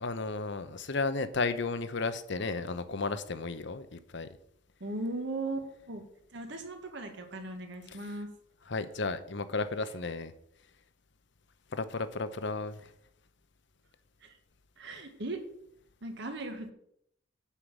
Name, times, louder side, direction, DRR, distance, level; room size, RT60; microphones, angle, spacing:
voice 1, 0.0-4.3 7.9-8.0 8.7-10.3 11.7-12.8, left 3 dB, 60° left, 12 dB, 0.8 m, -33 dB
voice 2, 4.8-6.0 6.3-8.3 14.2-14.4 14.8-15.4 16.0-16.7, right 2 dB, 60° right, 5 dB, 1.7 m, -38 dB
8.2 x 5.8 x 7.4 m, 0.71 s
head